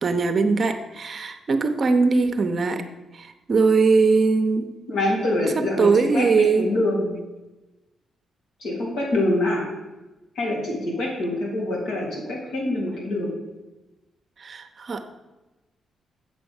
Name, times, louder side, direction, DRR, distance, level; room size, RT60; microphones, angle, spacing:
voice 1, 0.0-2.8 3.1-4.7 5.5-6.7 14.4-15.2, right 4 dB, 40° right, 8 dB, 0.8 m, -21 dB
voice 2, 4.9-7.1 8.6-9.6 10.4-13.3, left 1 dB, 80° left, -3 dB, 3.7 m, -25 dB
7.8 x 6.2 x 7.1 m, 1.1 s
cardioid pair, 120°, 0 cm